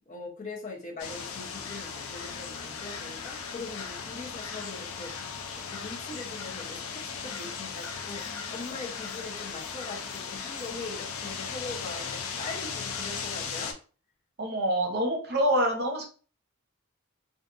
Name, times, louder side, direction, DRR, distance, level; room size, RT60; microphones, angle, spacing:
voice 1, 0.1-8.2 8.5-13.7, left 3 dB, 35° left, -2 dB, 0.8 m, -41 dB
sound 1, 1.0-13.7, left 6 dB, 75° left, 0.4 m, -37 dB
voice 2, 14.4-16.0, right 1 dB, 50° right, 2 dB, 0.7 m, -26 dB
2.5 x 2.5 x 2.5 m, 0.38 s
head